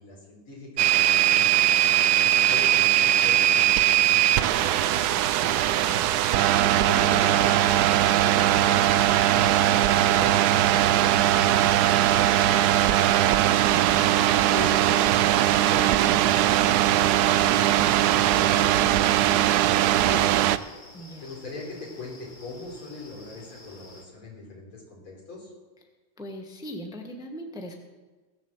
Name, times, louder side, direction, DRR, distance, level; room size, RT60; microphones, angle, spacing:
voice 1, 0.0-1.6 2.2-5.0 5.6-6.0 6.6-10.5 10.9-13.1 14.0-16.3 16.6-20.5 21.2-25.5, left 3 dB, 90° left, -1 dB, 4.8 m, -41 dB
sound 1, 0.8-20.6, right 12 dB, 80° right, 0.9 m, -20 dB
voice 2, 5.3-5.8 13.7-14.1 20.9-21.3 26.2-27.8, equal, ahead, 2 dB, 1.1 m, -40 dB
sound 2, 17.9-24.0, left 2 dB, 25° left, 1.7 m, -49 dB
17.0 x 7.4 x 7.3 m, 1.3 s
omnidirectional pair, 2.3 m